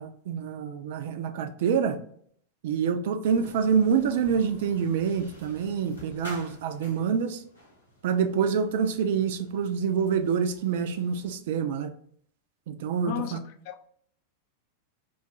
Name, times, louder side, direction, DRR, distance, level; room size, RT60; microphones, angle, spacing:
voice 1, 0.0-2.0 2.6-7.4 8.0-11.9 12.7-13.4, right 7 dB, 55° right, 0.3 m, -26 dB
sound 1, 3.2-11.4, left 1 dB, 80° left, 0.9 m, -50 dB
voice 2, 13.0-13.4 13.7-13.9, left 11 dB, 45° left, 0.3 m, -33 dB
3.0 x 2.3 x 2.5 m
figure-of-eight pair, 90°, 0 cm